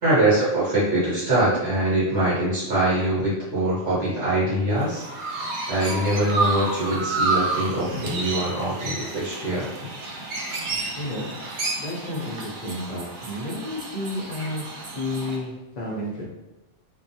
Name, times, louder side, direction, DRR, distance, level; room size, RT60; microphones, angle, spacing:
voice 1, 0.0-5.0 5.4-9.7, right 1 dB, 60° right, -10 dB, 1.1 m, -23 dB
Chirp tweet, 4.8-15.4, right 3 dB, 90° right, 0.9 m, -30 dB
voice 2, 10.7-11.3 11.8-16.2, left 1 dB, 50° left, -4 dB, 0.5 m, -32 dB
2.3 x 2.2 x 2.6 m, 1.0 s
omnidirectional pair, 1.3 m